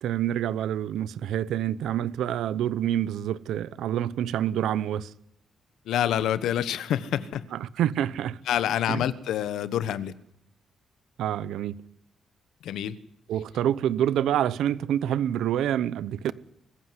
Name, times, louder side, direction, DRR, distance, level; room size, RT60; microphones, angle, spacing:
voice 1, 0.0-5.1 7.5-8.4 8.9-9.0 11.2-11.8 13.3-16.3, right 11 dB, 85° right, 0.9 m, -27 dB
voice 2, 5.8-7.4 8.5-10.1 12.6-13.0, left 10 dB, 85° left, 1.2 m, -27 dB
22.0 x 15.5 x 9.8 m
cardioid pair, 135°, 0 cm